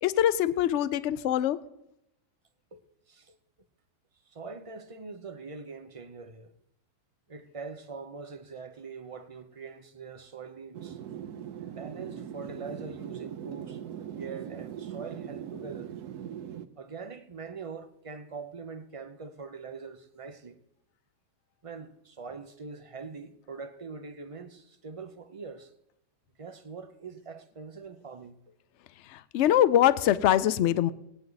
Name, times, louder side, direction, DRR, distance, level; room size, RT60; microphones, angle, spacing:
voice 1, 0.0-1.6 29.1-30.9, left 11 dB, 65° left, 0.7 m, -23 dB
voice 2, 4.3-6.5 7.3-11.0 11.8-13.8 14.1-15.9 16.8-20.6 21.6-25.7 26.4-28.4, right 4 dB, 50° right, 0.4 m, -43 dB
sound 1, 10.7-16.7, right 9 dB, 75° right, 1.2 m, -40 dB
19.5 x 9.2 x 4.0 m
omnidirectional pair, 1.7 m